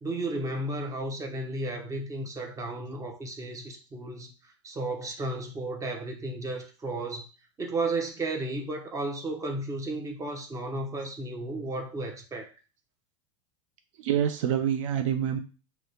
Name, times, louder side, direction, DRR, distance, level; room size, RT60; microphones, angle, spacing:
voice 1, 0.0-4.3 4.6-7.2 7.6-12.5, right 2 dB, 20° right, 0.8 m, -33 dB
voice 2, 14.0-15.4, right 9 dB, 65° right, 0.4 m, -26 dB
3.1 x 2.8 x 2.8 m
hypercardioid pair, 100°, 17 cm